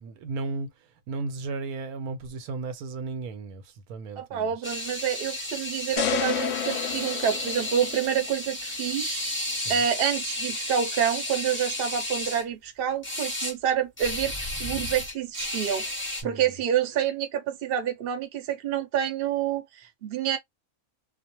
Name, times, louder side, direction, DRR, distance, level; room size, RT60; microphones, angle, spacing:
voice 1, 0.0-4.8 9.5-9.9 16.2-16.6, right 3 dB, 85° right, 1.2 m, -35 dB
voice 2, 4.2-9.2 9.7-20.4, right 9 dB, 50° right, 0.7 m, -28 dB
sound 1, 4.6-12.4 13.0-13.5 14.0-16.2, left 1 dB, 10° left, 0.8 m, -33 dB
sound 2, 6.0-8.3, left 9 dB, 65° left, 0.9 m, -30 dB
2.4 x 2.1 x 2.8 m
omnidirectional pair, 1.5 m